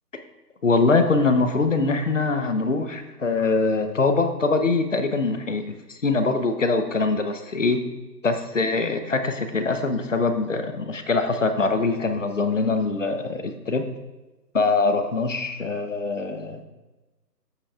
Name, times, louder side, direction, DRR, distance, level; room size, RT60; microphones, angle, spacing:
voice 1, 0.6-7.8 8.2-13.9 14.5-16.7, left 3 dB, 50° left, 8 dB, 0.8 m, -23 dB
14.0 x 6.1 x 2.4 m, 1.1 s
hypercardioid pair, 180°, 50 cm